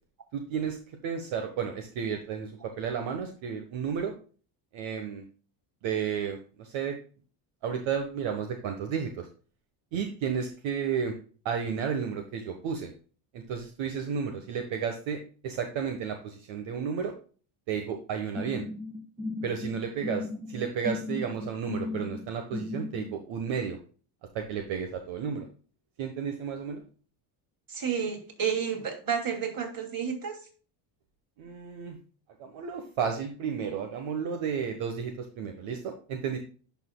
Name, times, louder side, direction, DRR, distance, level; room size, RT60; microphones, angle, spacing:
voice 1, 0.3-4.1 4.7-5.2 5.8-7.0 7.6-9.3 9.9-11.1 11.4-12.9 13.3-17.1 17.7-18.7 19.4-23.8 24.3-25.5 26.0-26.8 31.4-32.0 32.4-36.4, right 7 dB, 70° right, 5 dB, 1.4 m, -32 dB
sound 1, 18.3-23.1, left 2 dB, 10° right, 1.3 m, -36 dB
voice 2, 27.7-30.4, right 7 dB, 45° right, 3 dB, 2.7 m, -31 dB
10.5 x 5.9 x 2.3 m, 0.38 s
cardioid pair, 105°, 49 cm